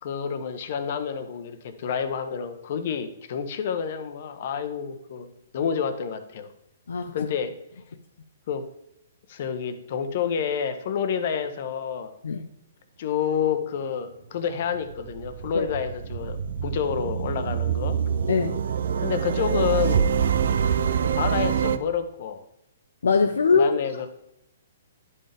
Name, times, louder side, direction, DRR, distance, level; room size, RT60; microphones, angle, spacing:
voice 1, 0.0-5.3 5.5-6.5 7.1-7.5 8.5-8.7 9.3-12.1 13.0-18.0 19.0-20.1 21.0-22.4 23.5-24.1, left 7 dB, 50° left, 9 dB, 1.0 m, -29 dB
Movie Theater, 14.5-21.8, right 8 dB, 65° right, 0.5 m, -25 dB
voice 2, 23.0-23.7, left 5 dB, 75° left, 6 dB, 0.6 m, -21 dB
10.5 x 5.6 x 3.5 m, 0.80 s
hypercardioid pair, 130°, 0 cm